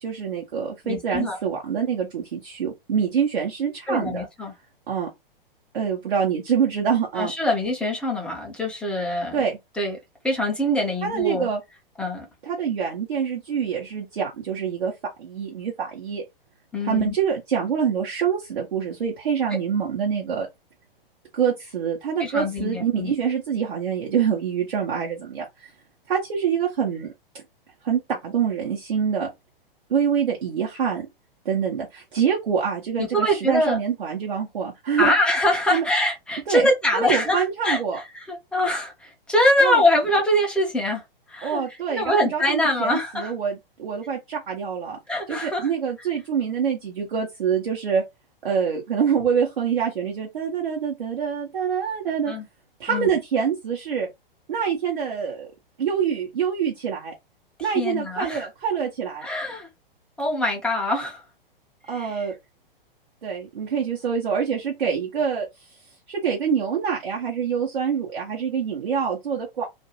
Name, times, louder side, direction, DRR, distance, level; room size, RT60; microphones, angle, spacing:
voice 1, 0.0-4.3 4.9-5.1 5.7-7.3 9.3-9.6 11.0-11.6 12.4-14.9 15.2-16.2 16.8-20.5 21.3-25.7 26.1-27.1 27.8-29.3 29.9-31.1 31.4-35.1 35.7-35.8 36.5-36.7 36.9-38.0 39.6-39.8 41.4-45.0 45.3-48.0 48.4-52.3 52.8-54.1 54.5-55.5 55.8-57.1 57.6-59.3 61.9-62.3 63.2-65.7 66.1-69.7, right 7 dB, 60° right, 0.9 m, -25 dB
voice 2, 0.8-1.4 3.9-4.5 7.2-9.4 9.8-10.0 10.2-11.5 12.0-12.3 16.7-17.1 22.2-23.1 33.0-33.8 35.0-41.0 41.3-43.3 45.1-45.7 52.3-52.5 52.9-53.1 57.7-58.5 59.2-59.7 60.2-61.2 61.9-62.2, left 1 dB, 5° left, 0.6 m, -24 dB
2.5 x 2.2 x 2.9 m
figure-of-eight pair, 110°, 29 cm